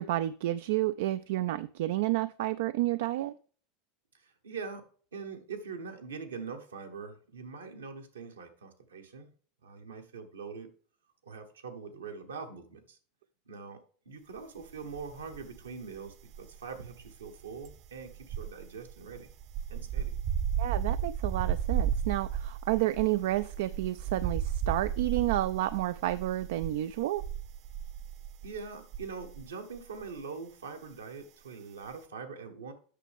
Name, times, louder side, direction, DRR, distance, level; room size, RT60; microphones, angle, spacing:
voice 1, 0.0-3.4 20.6-27.2, right 15 dB, 70° right, 0.3 m, -30 dB
voice 2, 4.1-4.8 5.1-9.3 9.6-10.7 11.2-13.0 13.5-19.3 19.7-20.2 28.4-32.7, right 5 dB, 85° right, 1.3 m, -43 dB
sound 1, 14.9-15.7 16.0-29.5 29.8-30.0, right 8 dB, 50° right, 0.7 m, -34 dB
8.3 x 6.2 x 3.5 m
hypercardioid pair, 85°, 0 cm